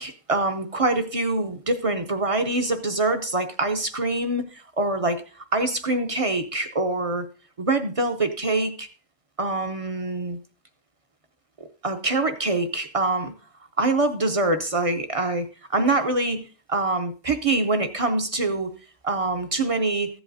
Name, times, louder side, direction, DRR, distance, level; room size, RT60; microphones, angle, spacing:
voice 1, 0.0-7.3 7.6-8.9 9.4-10.4 11.6-13.3 13.8-15.5 15.7-18.7 19.0-20.1, right 2 dB, 40° right, 7 dB, 0.5 m, -25 dB
14.5 x 8.0 x 2.6 m, 0.36 s
omnidirectional pair, 1.3 m